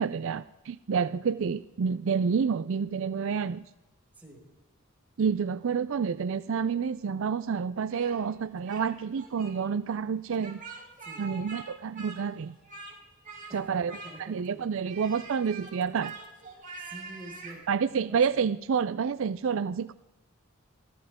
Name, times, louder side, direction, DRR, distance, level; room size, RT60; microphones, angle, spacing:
voice 1, 0.0-3.6 5.2-10.6 11.2-12.5 13.5-16.1 17.7-19.9, right 6 dB, 65° right, 16 dB, 0.4 m, -29 dB
Speech, 7.9-8.9 9.1-9.5 10.3-11.7 11.9-13.0 13.2-13.5 13.9-14.5 14.9-17.6, right 4 dB, 40° right, 4.3 m, -44 dB
voice 2, 13.5-15.1 16.6-18.4, right 1 dB, 10° right, -4 dB, 5.3 m, -49 dB
24.0 x 15.5 x 3.6 m, 1.0 s
head